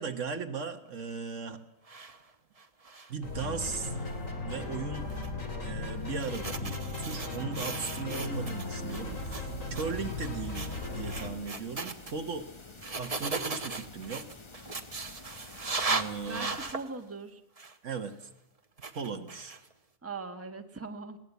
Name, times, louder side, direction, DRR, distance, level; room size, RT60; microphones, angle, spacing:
voice 1, 0.0-1.6 3.1-3.9 4.4-5.1 5.6-12.5 12.9-14.3 15.9-16.6 17.8-18.1 18.9-19.6, right 5 dB, 65° right, 8 dB, 1.5 m, -37 dB
sound 1, 1.9-2.2 2.6-3.2 3.9-4.1 5.1-5.3 6.1-8.6 8.9-9.4 9.7-9.9 10.1-10.3 10.5-12.1 12.8-16.9 17.6-17.7 18.8-19.7, right 3 dB, 30° right, 1.1 m, -37 dB
sound 2, 3.2-11.3, left 3 dB, 70° left, 3.5 m, -37 dB
sound 3, 8.3-16.7, left 3 dB, 25° left, 0.9 m, -50 dB
voice 2, 16.3-17.4 20.0-21.2, right 3 dB, 10° right, 6 dB, 1.3 m, -40 dB
21.0 x 17.5 x 8.2 m, 0.87 s
omnidirectional pair, 1.4 m